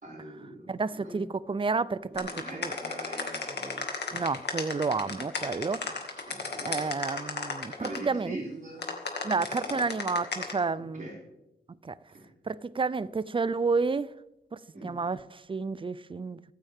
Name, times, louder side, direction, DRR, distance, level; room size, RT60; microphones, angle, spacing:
voice 1, 0.0-0.7 0.9-1.2 2.1-3.9 5.0-5.1 5.8-5.9 6.3-6.8 7.8-8.8 9.7-9.8 10.9-11.1 12.1-12.2 14.7-14.9, right 1 dB, 45° right, 6.1 m, -42 dB
voice 2, 0.7-2.8 4.1-6.4 6.6-8.4 9.2-11.1 11.7-12.0 12.4-14.1 14.5-16.4, right 4 dB, 30° right, 0.5 m, -31 dB
sound 1, 2.2-8.0 8.8-10.5, left 4 dB, 70° left, 2.2 m, -33 dB
24.5 x 9.0 x 3.6 m
wide cardioid pair, 90°, 18 cm